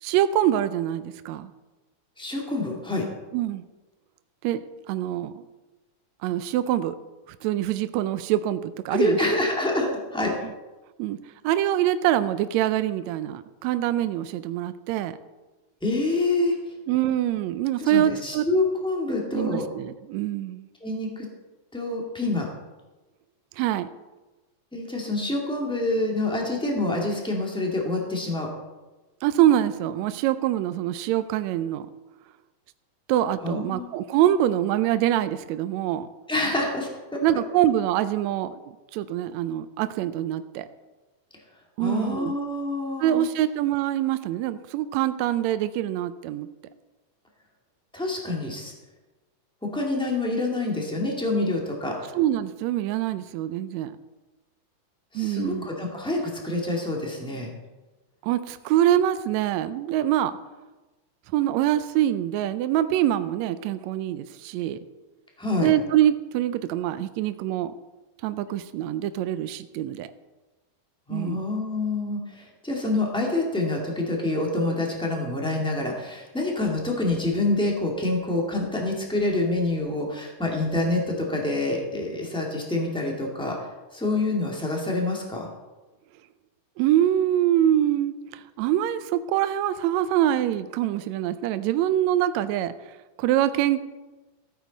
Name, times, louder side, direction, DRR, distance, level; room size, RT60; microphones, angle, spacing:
voice 1, 0.0-1.5 3.3-3.6 4.4-5.4 6.2-7.0 7.4-9.3 11.0-11.2 11.4-15.2 16.9-18.5 19.3-20.7 23.6-23.9 29.2-31.9 33.1-36.1 37.2-38.6 38.9-40.7 41.8-42.3 43.0-46.5 52.1-54.0 55.1-55.7 58.2-60.4 61.3-64.8 65.6-67.7 68.2-70.1 71.1-71.4 86.8-93.8, right 12 dB, 80° right, 12 dB, 1.6 m, -24 dB
voice 2, 2.2-3.1 8.9-10.3 15.8-16.5 17.8-19.7 20.8-21.3 21.7-22.5 24.7-28.5 33.4-33.9 36.3-37.2 41.8-43.2 47.9-48.7 49.6-52.1 55.1-57.5 65.4-65.7 71.1-83.6 83.9-85.5, left 2 dB, ahead, -1 dB, 1.2 m, -27 dB
15.0 x 9.0 x 4.1 m, 1.1 s
omnidirectional pair, 3.6 m